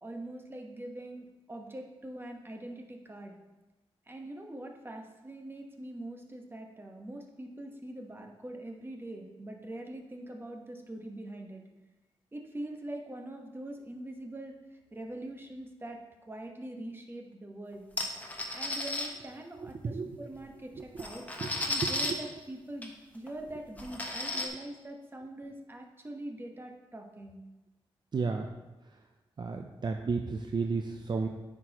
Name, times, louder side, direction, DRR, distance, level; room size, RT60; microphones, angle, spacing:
voice 1, 0.0-3.4 4.1-11.6 12.3-14.6 14.9-17.8 18.5-19.7 20.2-21.2 21.6-27.4, right 1 dB, 20° right, 2 dB, 1.1 m, -43 dB
sound 1, 18.0-19.1 20.4-20.5 20.8-22.1 22.8-22.9 23.3-23.4 23.8-24.5, left 2 dB, 15° left, 1.2 m, -34 dB
voice 2, 19.5-20.2 20.7-21.1 21.4-22.2 28.1-28.5 28.8-29.1 29.4-31.3, right 4 dB, 45° right, 4 dB, 0.6 m, -34 dB
9.3 x 6.1 x 2.9 m, 1.1 s
cardioid pair, 75°, 10 cm